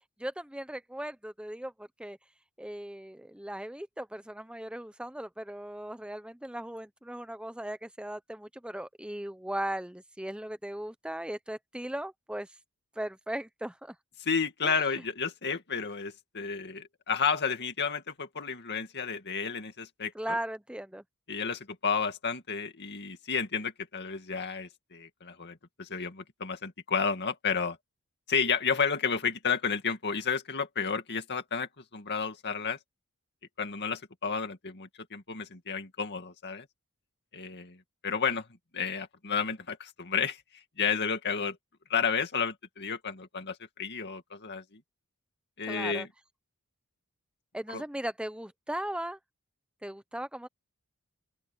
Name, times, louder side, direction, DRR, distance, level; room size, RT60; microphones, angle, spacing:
voice 1, 0.2-2.2 2.6-12.5 13.0-14.0 14.6-14.8 20.1-21.0 45.7-46.1 47.5-49.2 49.8-50.5, right 1 dB, 5° right, 0.8 m, -38 dB
voice 2, 14.2-20.4 21.3-27.8 28.3-32.8 33.6-36.7 37.3-37.8 38.0-38.5 38.7-41.6 41.9-44.8 45.6-46.1 47.7-47.8, left 6 dB, 50° left, 2.3 m, -32 dB
open air
head